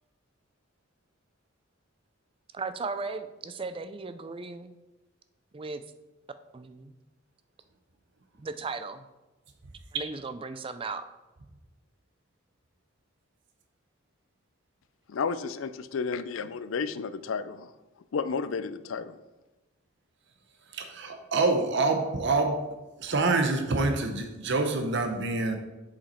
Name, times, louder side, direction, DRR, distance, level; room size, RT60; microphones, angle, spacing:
voice 1, 2.5-4.7 5.5-5.8 6.5-6.9 8.4-9.0 9.9-11.1, right 4 dB, 25° right, 10 dB, 0.4 m, -36 dB
voice 2, 15.1-17.7 18.1-19.2, left 5 dB, 80° left, 13 dB, 0.4 m, -32 dB
voice 3, 20.7-22.6 23.0-25.6, right 3 dB, 60° right, 5 dB, 0.8 m, -26 dB
7.1 x 5.1 x 4.3 m, 1.1 s
head